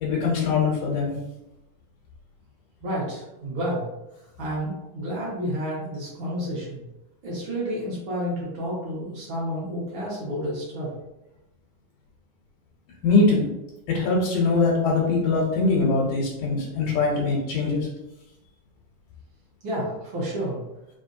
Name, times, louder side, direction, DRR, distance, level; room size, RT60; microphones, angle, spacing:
voice 1, 0.0-1.2 13.0-13.5 13.9-17.9, left 3 dB, 80° left, -3 dB, 2.2 m, -22 dB
voice 2, 2.8-3.9 4.4-6.8 7.2-10.9 19.6-20.6, equal, 65° right, -6 dB, 1.3 m, -30 dB
5.1 x 3.0 x 2.6 m, 0.93 s
omnidirectional pair, 3.7 m